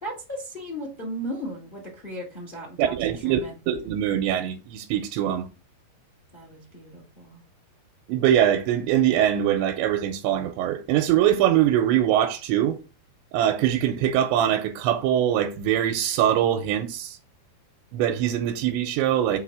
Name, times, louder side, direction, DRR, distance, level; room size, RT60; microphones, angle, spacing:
voice 1, 0.0-2.9 3.2-3.5 6.3-7.4, equal, 75° left, 0.4 m, -36 dB
voice 2, 2.8-3.4 3.7-5.5 8.1-12.8 13.3-17.2 17.9-19.4, right 11 dB, 85° right, 3.0 m, -22 dB
7.6 x 3.4 x 6.3 m
omnidirectional pair, 5.2 m